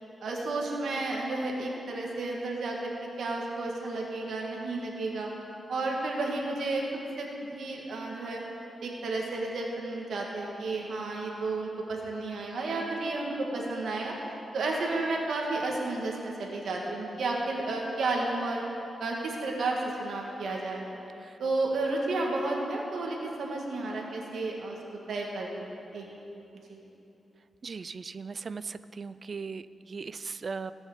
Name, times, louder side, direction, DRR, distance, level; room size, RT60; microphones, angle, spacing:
voice 1, 0.2-5.3 5.7-6.8 7.2-8.4 8.8-14.1 14.5-18.6 19.0-20.9 21.4-24.8 25.1-26.0 26.7-26.8, right 2 dB, 80° right, -1 dB, 1.8 m, -32 dB
voice 2, 27.6-30.7, right 5 dB, 45° right, 14 dB, 0.4 m, -38 dB
18.0 x 6.3 x 6.7 m, 2.9 s
wide cardioid pair, 120°, 0 cm